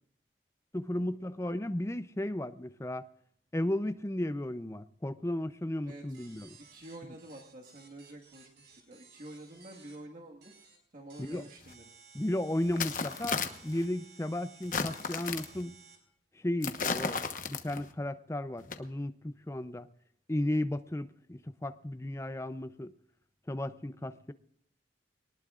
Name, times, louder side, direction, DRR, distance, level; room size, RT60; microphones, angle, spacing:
voice 1, 0.7-3.1 3.5-6.5 11.2-11.4 12.1-15.7 16.4-19.9 20.3-22.9 23.5-24.3, left 1 dB, 15° left, 0.5 m, -34 dB
voice 2, 5.8-6.2 6.6-10.5 10.9-11.8, right 1 dB, 50° right, 1.7 m, -49 dB
sound 1, 6.1-10.0 10.4-10.8 11.1-16.0, right 5 dB, 70° right, 4.6 m, -57 dB
sound 2, 11.7-11.8 12.6-13.8 14.6-15.6 16.6-17.9 18.6-18.7, left 5 dB, 45° left, 1.1 m, -34 dB
23.0 x 19.5 x 2.5 m
head